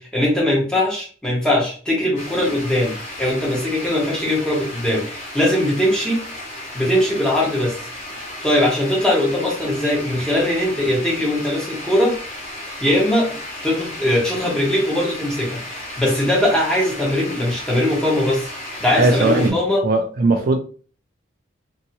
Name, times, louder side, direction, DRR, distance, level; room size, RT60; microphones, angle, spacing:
voice 1, 0.0-6.2 6.7-7.9 8.4-12.2 12.8-13.3 13.6-18.5 18.8-19.8, left 1 dB, 5° left, -4 dB, 1.0 m, -20 dB
sound 1, 2.1-19.5, left 1 dB, 35° left, 1.3 m, -34 dB
voice 2, 19.0-19.6 19.8-20.6, right 2 dB, 50° right, 5 dB, 0.3 m, -18 dB
2.7 x 2.7 x 2.8 m, 0.40 s
head